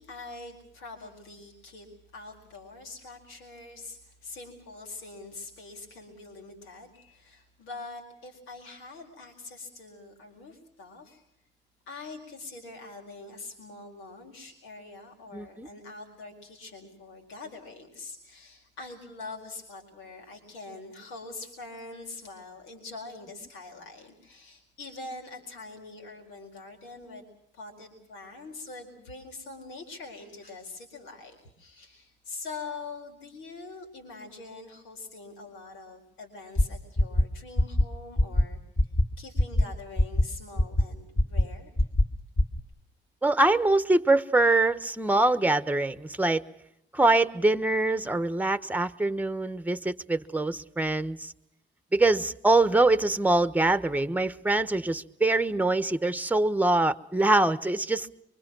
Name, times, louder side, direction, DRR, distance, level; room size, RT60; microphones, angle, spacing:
voice 1, 0.0-1.9 2.1-11.3 11.9-27.3 27.5-38.9 39.2-41.7, left 3 dB, 85° left, 4.5 m, -44 dB
voice 2, 15.3-15.7 43.2-46.4 46.9-51.3 51.9-58.1, right 2 dB, 10° right, 1.1 m, -24 dB
sound 1, 36.6-36.7 37.0-37.2 37.6-37.8 38.2-38.4 38.8-39.0 39.4-39.6 40.0-40.2 40.6-40.8 41.2-41.4 41.8-42.0 42.4-42.6, left 1 dB, 35° left, 2.8 m, -21 dB
24.5 x 24.5 x 6.2 m
cardioid pair, 90°, 20 cm